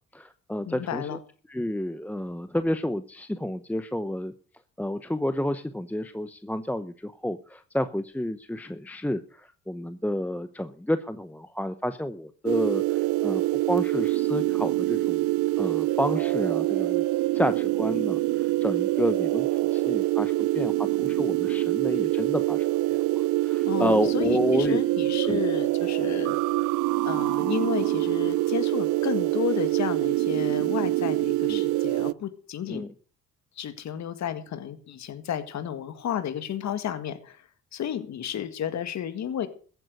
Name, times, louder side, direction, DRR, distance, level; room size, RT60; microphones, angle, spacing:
voice 1, 0.1-1.2 1.5-4.3 4.8-13.4 13.7-15.2 15.6-17.1 17.3-23.0 23.4-24.8 25.2-25.4 31.5-31.6 32.7-32.9, left 1 dB, 5° left, 11 dB, 0.8 m, -30 dB
voice 2, 0.6-1.2 23.6-26.3 27.0-32.8 33.6-37.4 37.7-39.5, left 9 dB, 65° left, 10 dB, 1.8 m, -32 dB
sound 1, 12.5-32.1, right 17 dB, 90° right, 0.5 m, -25 dB
14.5 x 9.0 x 6.6 m, 0.40 s
cardioid pair, 90°, 30 cm